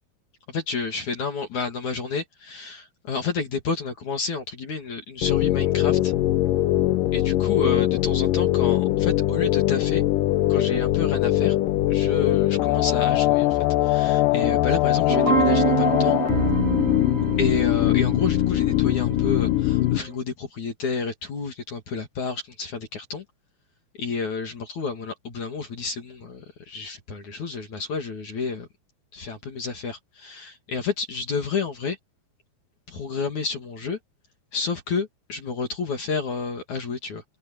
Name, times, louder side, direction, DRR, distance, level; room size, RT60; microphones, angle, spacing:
voice 1, 0.5-6.1 7.1-10.0 10.5-11.6 11.9-16.2 17.4-23.2 24.0-28.7 29.1-32.0 32.9-34.0 34.5-37.2, left 5 dB, 50° left, 3.6 m, -30 dB
sound 1, 5.2-20.0, left 15 dB, 85° left, 1.9 m, -21 dB
sound 2, 15.1-20.1, right 8 dB, 55° right, 7.6 m, -27 dB
open air
omnidirectional pair, 4.8 m